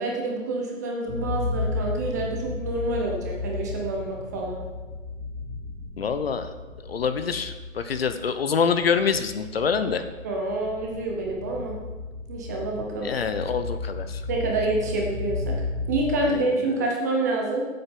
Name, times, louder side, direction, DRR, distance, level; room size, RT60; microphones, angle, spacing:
voice 1, 0.0-4.6 10.2-11.8 12.3-13.1 14.3-15.6 15.9-17.7, right 2 dB, 15° right, 0 dB, 0.8 m, -27 dB
Alien Drone - Deep oscillating bass, 1.1-16.7, left 3 dB, 75° left, 3.6 m, -34 dB
voice 2, 6.0-6.5 6.8-10.1 13.0-14.2 16.2-16.4 16.8-16.9, left 6 dB, 45° left, 10 dB, 0.8 m, -26 dB
14.0 x 8.0 x 5.3 m, 1.3 s
hypercardioid pair, 160°, 40 cm